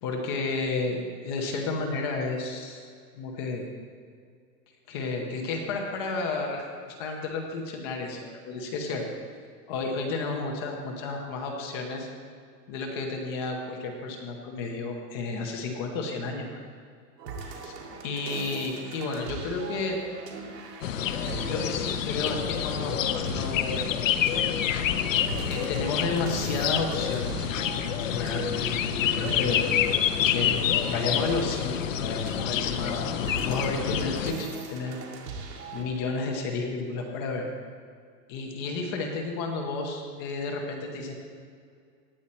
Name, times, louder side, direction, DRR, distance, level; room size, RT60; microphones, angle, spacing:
voice 1, 0.0-2.8 3.1-3.6 4.9-9.0 9.7-12.1 12.7-16.6 17.4-17.7 18.0-20.0 21.4-24.0 25.5-27.5 28.0-29.6 30.3-33.1 33.5-35.0 35.7-37.5 38.3-41.1, left 3 dB, 15° left, 2 dB, 0.7 m, -32 dB
sound 1, 17.2-35.8, right 4 dB, 70° right, 2.6 m, -41 dB
sound 2, 20.8-34.3, left 9 dB, 50° left, 0.7 m, -28 dB
17.5 x 9.7 x 4.3 m, 2.2 s
supercardioid pair, 175°, 49 cm